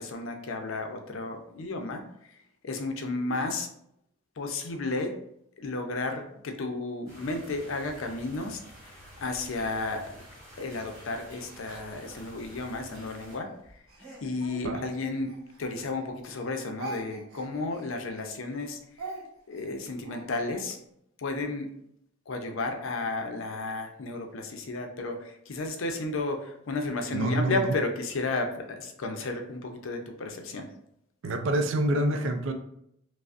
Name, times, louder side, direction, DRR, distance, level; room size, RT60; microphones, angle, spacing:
voice 1, 0.0-2.3 2.6-3.7 4.4-5.2 5.6-10.2 10.6-13.8 14.2-15.3 15.6-19.1 19.5-20.8 21.2-21.7 22.3-30.7, left 3 dB, 70° left, 4 dB, 0.5 m, -33 dB
sound 1, 7.1-13.4, equal, 15° right, 1.3 m, -50 dB
Speech, 9.5-12.7 13.2-16.0 16.3-20.7, right 3 dB, 80° right, 0.7 m, -45 dB
sound 2, 12.0-12.5 14.0-14.5 15.9-16.0 16.4-16.6, right 1 dB, 5° left, 1.1 m, -51 dB
voice 2, 27.1-27.7 31.2-32.5, right 1 dB, 60° right, 7 dB, 0.4 m, -27 dB
4.9 x 2.0 x 2.4 m, 0.75 s
head